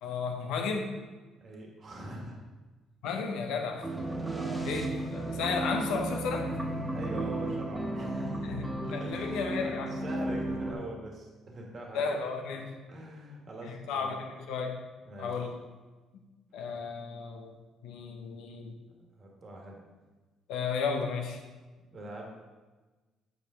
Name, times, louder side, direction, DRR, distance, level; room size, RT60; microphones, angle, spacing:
voice 1, 0.0-0.9 3.0-3.9 4.6-6.5 8.4-10.1 11.9-12.7 13.6-14.8 15.2-15.6 16.5-17.5 17.8-18.7 20.5-21.4, left 5 dB, 80° left, 4 dB, 0.9 m, -33 dB
voice 2, 1.4-2.4 3.6-3.7 4.2-4.7 6.9-12.0 12.9-14.2 15.0-15.5 19.0-19.8 21.9-22.3, right 1 dB, 45° right, 0 dB, 1.6 m, -43 dB
sound 1, 3.8-10.7, right 1 dB, 15° right, 1.4 m, -34 dB
8.0 x 4.7 x 3.7 m, 1.3 s
supercardioid pair, 65°, 0 cm